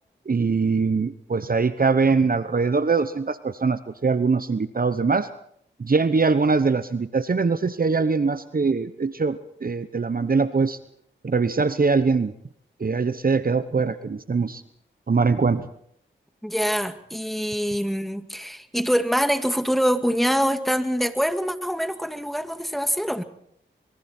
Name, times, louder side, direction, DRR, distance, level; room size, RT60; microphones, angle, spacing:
voice 1, 0.3-5.3 5.8-10.8 11.2-12.3 12.8-14.6 15.1-15.6, right 4 dB, 45° right, 12 dB, 1.0 m, -22 dB
voice 2, 16.4-23.2, equal, ahead, 8 dB, 2.1 m, -24 dB
26.0 x 22.5 x 4.4 m, 0.68 s
cardioid pair, 40°, 20 cm